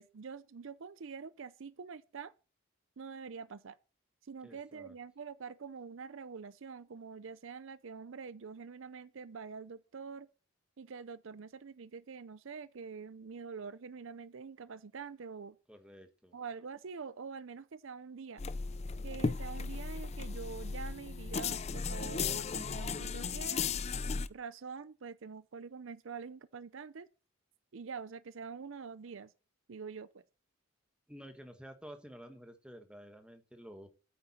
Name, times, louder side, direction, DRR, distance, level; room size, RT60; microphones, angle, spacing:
voice 1, 0.0-2.3 3.0-3.8 4.2-10.3 10.8-15.6 16.3-18.4 19.0-23.8 24.3-27.1 27.7-29.3 29.7-30.2, right 5 dB, 65° right, 0.5 m, -45 dB
voice 2, 4.4-4.9 15.7-16.3 31.1-33.9, equal, 5° right, 1.3 m, -51 dB
sound 1, 18.4-24.3, left 5 dB, 30° left, 0.4 m, -36 dB
8.8 x 8.6 x 4.2 m
head